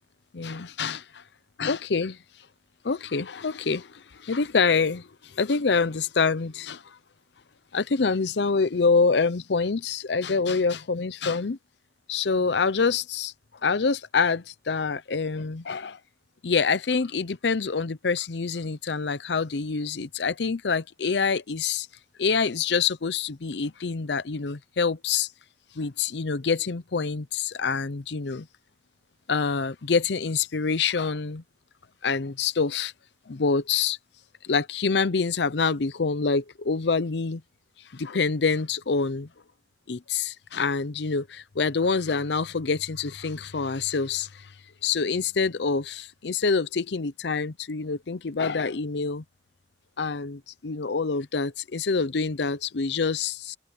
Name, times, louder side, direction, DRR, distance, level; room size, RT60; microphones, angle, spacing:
voice 1, 0.3-1.0 1.6-2.2 2.8-7.0 7.7-11.6 12.1-13.3 13.6-16.0 16.4-21.9 22.2-25.3 25.8-28.5 29.3-31.4 32.0-32.9 33.3-34.0 34.4-37.4 37.9-39.3 39.9-44.5 44.8-49.2 50.0-53.6, left 5 dB, 80° left, 0.7 m, -26 dB
head